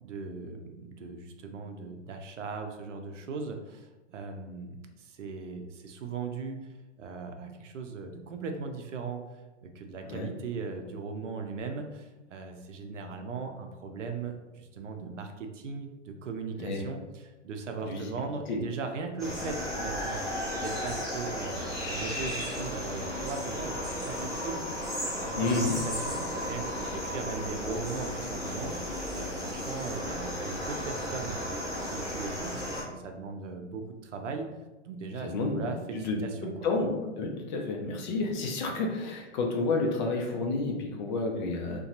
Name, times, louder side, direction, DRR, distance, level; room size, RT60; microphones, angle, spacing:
voice 1, 0.0-6.7 7.0-9.2 9.6-31.4 31.8-34.5 34.8-36.7, right 4 dB, 80° right, 4 dB, 0.5 m, -39 dB
sound 1, 19.2-32.8, left 1 dB, ahead, 0.8 m, -34 dB
voice 2, 25.3-25.8 35.2-35.6 35.9-36.9 37.2-41.8, left 3 dB, 40° left, 1 dB, 0.5 m, -30 dB
2.7 x 2.2 x 2.5 m, 1.1 s
hypercardioid pair, 120°, 36 cm